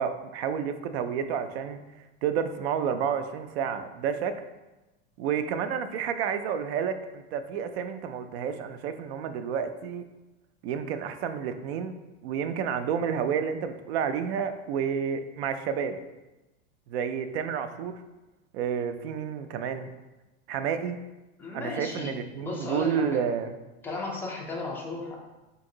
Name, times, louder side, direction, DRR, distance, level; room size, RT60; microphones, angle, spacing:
voice 1, 0.0-1.8 2.2-4.4 5.2-10.0 10.6-11.9 12.2-16.0 16.9-18.0 18.5-19.9 20.5-21.0 21.5-23.5, right 7 dB, 70° right, 10 dB, 0.5 m, -30 dB
voice 2, 21.4-23.2 23.8-25.2, left 3 dB, 5° left, -3 dB, 0.4 m, -35 dB
4.0 x 2.6 x 3.7 m, 1.1 s
supercardioid pair, 150°, 32 cm